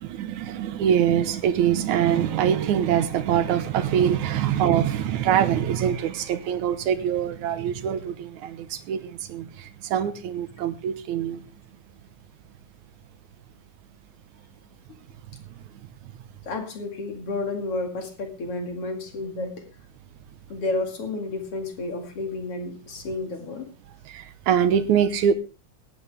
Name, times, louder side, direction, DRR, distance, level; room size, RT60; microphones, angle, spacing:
voice 1, 0.0-8.6 8.9-9.5 9.9-11.4 24.1-25.3, right 9 dB, 85° right, 12 dB, 2.4 m, -23 dB
voice 2, 16.5-19.7 20.5-23.7, left 2 dB, 50° left, 4 dB, 3.0 m, -31 dB
17.5 x 12.0 x 3.5 m, 0.33 s
omnidirectional pair, 3.4 m